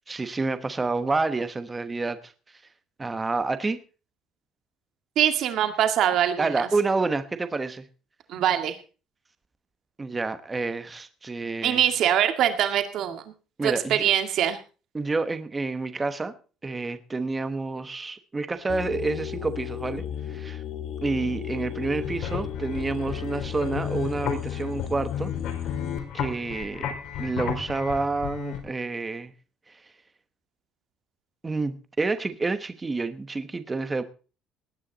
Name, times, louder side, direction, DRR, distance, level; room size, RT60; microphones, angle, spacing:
voice 1, 0.1-2.3 3.0-3.8 6.4-7.9 10.0-11.8 13.6-14.1 14.9-16.3 16.6-20.6 21.0-25.3 26.1-26.9 27.2-29.3 29.7-29.8 31.4-34.0, right 3 dB, 15° right, 10 dB, 1.1 m, -29 dB
voice 2, 5.2-6.7 8.3-8.8 11.6-13.3 13.6-14.6, right 10 dB, 55° right, 7 dB, 2.0 m, -23 dB
sound 1, 18.7-26.0, left 10 dB, 50° left, 1.0 m, -34 dB
sound 2, 21.8-28.6, left 8 dB, 65° left, 4.2 m, -34 dB
19.0 x 9.9 x 4.0 m, 0.35 s
cardioid pair, 160°, 0 cm